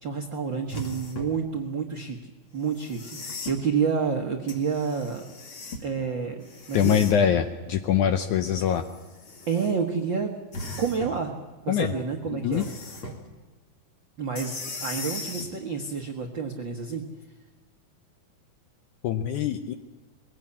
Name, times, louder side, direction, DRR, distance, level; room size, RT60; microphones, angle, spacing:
voice 1, 0.0-5.2 5.8-7.0 9.5-10.4 10.8-11.3 11.6-12.6 14.2-17.0, right 6 dB, 70° right, 2 dB, 1.1 m, -29 dB
sound 1, 0.7-1.4 2.7-3.6 4.5-5.9 6.4-7.3 8.5-9.7 10.5-11.2 12.5-13.2 14.4-15.5 17.2-17.3, left 2 dB, 40° left, 2.7 m, -38 dB
voice 2, 6.7-8.8 11.7-11.9 12.3-12.7 19.0-19.7, left 9 dB, 75° left, 8 dB, 1.8 m, -23 dB
22.0 x 16.5 x 8.5 m, 1.3 s
omnidirectional pair, 4.3 m